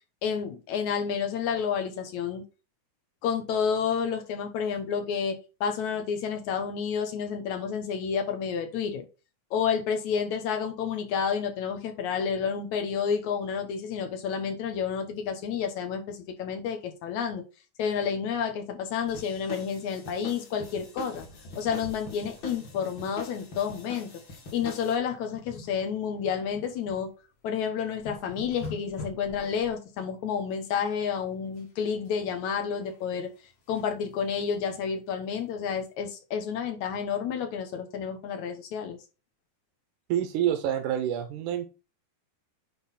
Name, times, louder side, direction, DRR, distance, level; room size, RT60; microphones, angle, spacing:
voice 1, 0.2-2.4 3.2-9.0 9.5-17.4 17.8-21.3 21.6-24.1 24.5-27.1 27.4-33.3 33.7-39.0, left 7 dB, 70° left, 5 dB, 2.4 m, -30 dB
sound 1, 19.1-25.0, left 2 dB, 40° left, 2.4 m, -44 dB
sound 2, 21.1-23.5 23.8-24.0 24.5-24.8 25.1-27.0 27.5-27.6 27.8-29.7 31.6-32.1 32.5-33.9 34.4-34.5 34.8-34.9 35.3-35.4, left 3 dB, 85° left, 4.4 m, -45 dB
voice 2, 40.1-41.7, right 10 dB, 80° right, 6 dB, 2.2 m, -27 dB
9.7 x 3.9 x 4.2 m, 0.31 s
omnidirectional pair, 3.7 m